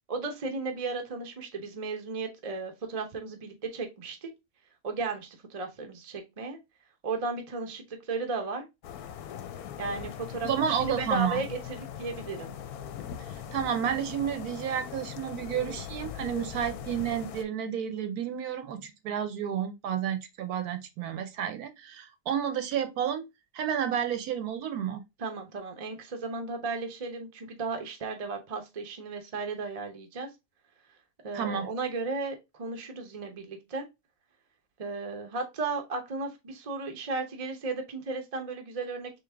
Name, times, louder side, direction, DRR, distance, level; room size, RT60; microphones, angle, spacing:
voice 1, 0.1-4.3 4.8-6.6 7.0-8.7 9.8-12.5 25.2-30.3 31.2-33.9 34.8-39.2, right 3 dB, 40° right, 0.5 m, -35 dB
sound 1, 8.8-17.4, left 9 dB, 70° left, 1.0 m, -40 dB
voice 2, 10.4-11.4 13.3-23.2 23.5-25.0 31.3-31.7, right 9 dB, 70° right, 1.1 m, -31 dB
3.8 x 3.0 x 3.3 m
omnidirectional pair, 1.8 m